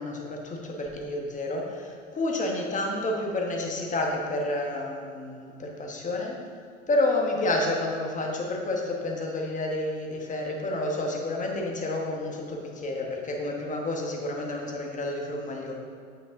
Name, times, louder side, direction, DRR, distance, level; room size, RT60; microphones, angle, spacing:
voice 1, 0.0-6.4 6.9-15.7, left 2 dB, 20° left, 0 dB, 1.2 m, -30 dB
8.0 x 5.4 x 3.6 m, 2.3 s
hypercardioid pair, 100°, 39 cm